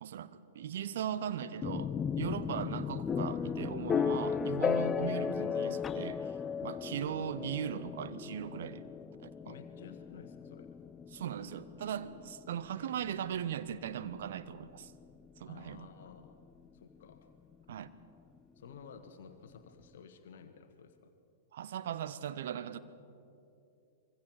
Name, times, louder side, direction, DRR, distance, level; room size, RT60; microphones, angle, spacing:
voice 1, 0.0-6.4 6.6-8.9 9.2-9.5 11.1-14.9 15.4-15.9 17.7-17.9 21.5-22.8, right 9 dB, 55° right, 13 dB, 0.8 m, -39 dB
sound 1, 1.6-15.4, left 6 dB, 20° left, 0.5 m, -36 dB
voice 2, 9.4-10.8 15.4-16.4 16.7-17.3 18.5-21.2, left 6 dB, 55° left, 8 dB, 1.3 m, -53 dB
25.5 x 22.5 x 4.8 m, 2.6 s
figure-of-eight pair, 100°, 0 cm